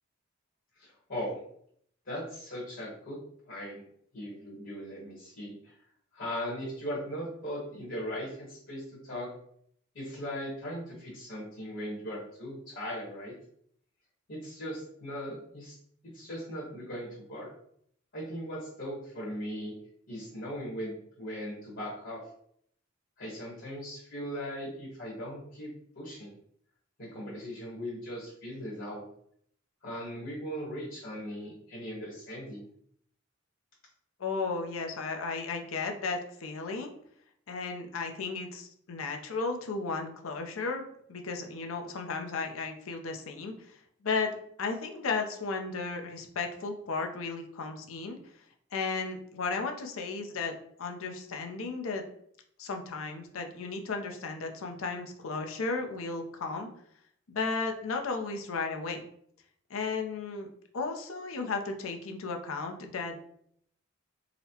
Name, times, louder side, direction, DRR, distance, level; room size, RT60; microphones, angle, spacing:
voice 1, 0.7-1.4 2.1-3.2 3.5-3.8 4.1-5.7 6.1-9.3 9.9-13.3 14.3-15.8 16.0-17.5 18.1-19.7 20.1-22.2 23.2-25.7 25.9-26.3 27.0-29.0 29.8-32.7, equal, 65° left, -5 dB, 1.1 m, -39 dB
voice 2, 34.2-36.9 37.5-48.2 48.7-50.5 50.8-52.0 52.6-56.7 57.3-59.1 59.7-60.5 60.7-63.2, left 4 dB, 90° left, 4 dB, 0.5 m, -34 dB
3.9 x 2.1 x 2.8 m, 0.67 s
head